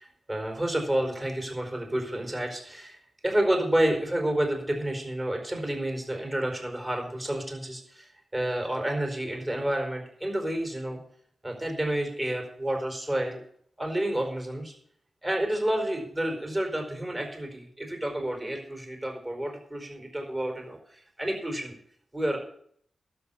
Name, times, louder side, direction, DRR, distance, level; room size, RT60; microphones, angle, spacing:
voice 1, 0.0-3.0 3.2-11.0 11.4-13.4 13.8-14.7 15.2-21.7 22.1-22.4, right 1 dB, 20° right, 3 dB, 4.9 m, -30 dB
12.0 x 7.1 x 8.7 m, 0.62 s
cardioid pair, 80°, 0 cm